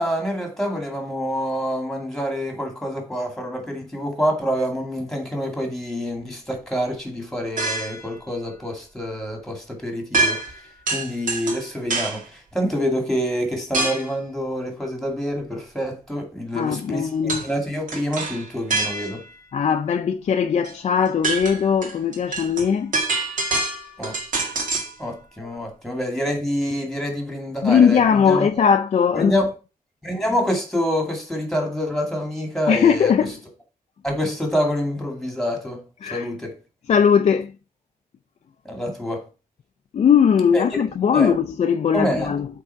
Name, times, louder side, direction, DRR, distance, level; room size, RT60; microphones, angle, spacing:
voice 1, 0.0-10.4 10.9-19.2 24.0-24.1 25.0-28.6 29.1-29.5 30.0-33.1 34.0-35.8 36.1-36.5 38.6-39.3 40.5-40.6 41.1-41.3 41.9-42.3, equal, ahead, 2.2 m, -26 dB
sound 1, 7.6-8.1 10.1-10.6 10.9-12.2 13.7-14.1 17.3-17.5 17.9-19.3 20.6-20.7 21.1-25.0, right 3 dB, 65° right, 1.9 m, -25 dB
voice 2, 16.5-17.4 19.5-23.0 27.6-29.3 32.7-33.3 36.0-36.3 36.9-37.5 39.9-42.5, left 7 dB, 50° left, 0.4 m, -19 dB
8.1 x 3.7 x 5.6 m
wide cardioid pair, 155°, 15 cm